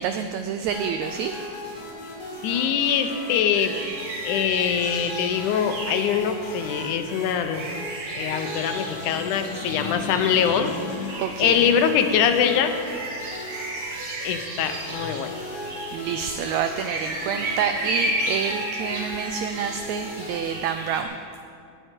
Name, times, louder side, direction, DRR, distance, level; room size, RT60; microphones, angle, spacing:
voice 1, 0.0-1.4 11.2-11.7 15.9-21.2, right 7 dB, 80° right, 7 dB, 1.7 m, -28 dB
sound 1, 0.7-20.6, equal, 35° left, 2.9 m, -38 dB
voice 2, 2.4-3.8 4.2-7.7 8.1-12.8 14.2-15.4, left 8 dB, 80° left, 7 dB, 2.2 m, -23 dB
sound 2, 3.5-21.0, right 2 dB, 55° right, 3.0 m, -34 dB
16.5 x 9.6 x 4.5 m, 2.3 s
omnidirectional pair, 3.6 m